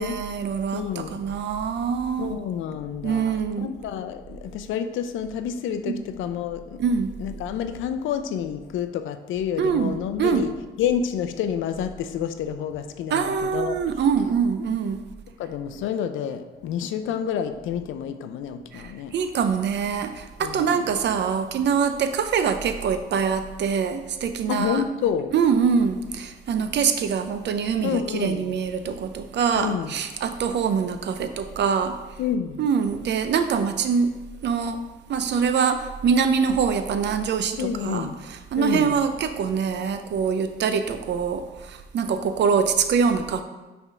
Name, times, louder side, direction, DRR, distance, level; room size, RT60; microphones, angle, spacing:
voice 1, 0.0-2.3 3.0-3.7 5.9-6.0 6.8-7.1 9.6-10.4 13.1-15.0 18.7-24.8 25.3-32.0 32.6-34.1 34.4-34.8 35.1-43.4, right 6 dB, 60° right, 9 dB, 0.6 m, -24 dB
voice 2, 0.7-1.2 2.2-3.3 3.6-6.8 7.2-10.5 10.8-13.8 15.4-19.2 20.4-20.9 24.5-25.3 27.8-28.5 29.5-29.9 32.2-32.6 37.6-38.2 38.6-39.0, left 8 dB, 80° left, 9 dB, 0.5 m, -29 dB
6.0 x 3.5 x 5.4 m, 1.1 s
cardioid pair, 90°, 20 cm